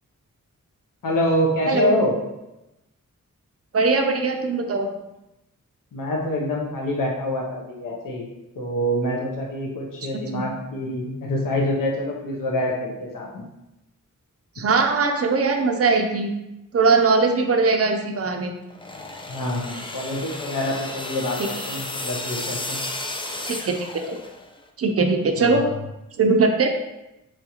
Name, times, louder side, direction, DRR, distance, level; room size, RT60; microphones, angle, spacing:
voice 1, 1.0-2.1 5.9-8.3 8.6-13.4 19.3-22.9 25.5-25.7, left 1 dB, 85° left, -1 dB, 0.7 m, -26 dB
voice 2, 3.7-4.9 10.3-10.4 14.6-16.3 16.7-18.5 23.4-24.2 24.8-25.7 26.2-26.7, right 4 dB, 50° right, 4 dB, 0.4 m, -20 dB
sound 1, 18.7-24.6, left 2 dB, 15° left, 0.3 m, -33 dB
4.3 x 2.3 x 2.8 m, 0.94 s
wide cardioid pair, 100°, 32 cm